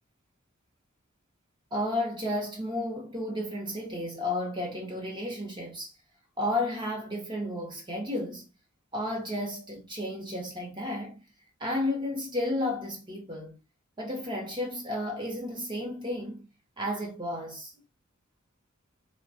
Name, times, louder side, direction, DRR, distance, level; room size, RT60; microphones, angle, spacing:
voice 1, 1.7-5.9 6.4-8.4 8.9-11.2 11.6-13.6 14.0-16.5 16.8-17.7, left 1 dB, 25° right, 0.7 m, -32 dB
3.3 x 2.1 x 2.5 m
head